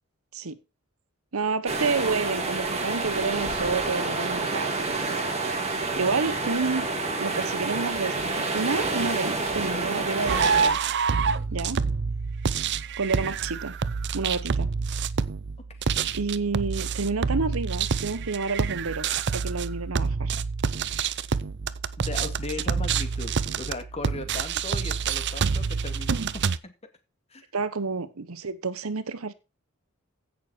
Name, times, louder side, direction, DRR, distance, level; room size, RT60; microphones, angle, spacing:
voice 1, 1.3-5.2 6.0-6.9 7.2-10.8 11.5-11.8 13.0-13.8 14.1-14.7 16.1-19.1 19.3-20.4 27.5-29.3, right 4 dB, 85° right, 1.0 m, -29 dB
sound 1, 1.7-10.7, right 3 dB, 30° right, 2.8 m, -28 dB
voice 2, 5.7-6.2 11.2-11.5 15.6-15.9 22.0-26.2 26.6-26.7 27.3-27.4, left 2 dB, 30° left, 2.2 m, -38 dB
sound 2, 10.3-26.6, right 5 dB, 55° right, 0.6 m, -27 dB
16.0 x 6.5 x 4.5 m
head